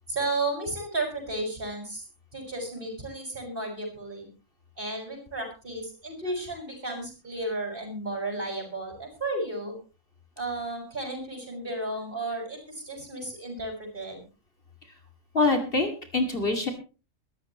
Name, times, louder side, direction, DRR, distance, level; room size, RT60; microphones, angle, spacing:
voice 1, 0.1-2.0 2.3-4.3 4.8-9.8 10.4-14.2, right 2 dB, 40° right, 2 dB, 6.6 m, -33 dB
voice 2, 15.3-16.7, left 3 dB, 45° left, 4 dB, 2.8 m, -25 dB
22.5 x 13.5 x 3.1 m, 0.34 s
omnidirectional pair, 1.3 m